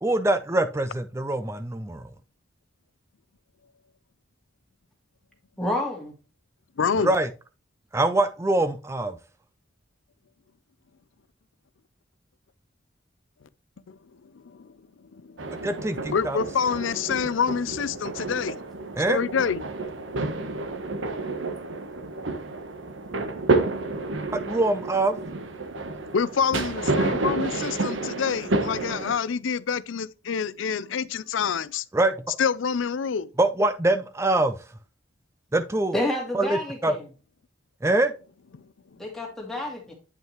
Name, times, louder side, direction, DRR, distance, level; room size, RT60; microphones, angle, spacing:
voice 1, 0.0-2.0 7.0-7.3 7.9-9.2 15.6-16.4 19.0-19.2 24.3-25.2 31.9-32.1 33.4-34.6 35.5-35.9 36.3-37.0 37.8-38.1, right 2 dB, 15° right, 0.4 m, -24 dB
voice 2, 5.6-6.1 35.9-37.0 39.0-39.9, left 1 dB, ahead, 2.3 m, -29 dB
voice 3, 6.8-7.1 13.9-14.0 14.6-14.7 15.1-15.6 16.1-18.6 19.1-19.6 26.1-31.8 32.4-33.3, left 6 dB, 85° left, 0.5 m, -27 dB
sound 1, 15.4-29.2, right 2 dB, 85° right, 1.1 m, -30 dB
9.1 x 5.5 x 3.0 m
head